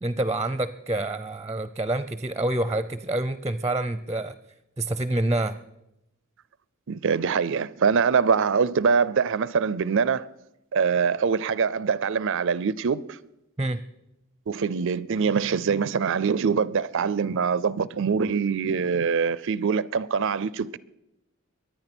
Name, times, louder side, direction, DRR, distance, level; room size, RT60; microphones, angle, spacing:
voice 1, 0.0-4.4 4.8-5.6 13.6-13.8, right 1 dB, 15° right, 0.6 m, -27 dB
voice 2, 6.9-10.3 10.7-13.2 14.5-20.8, right 6 dB, 60° right, 0.5 m, -24 dB
23.0 x 9.5 x 6.1 m
head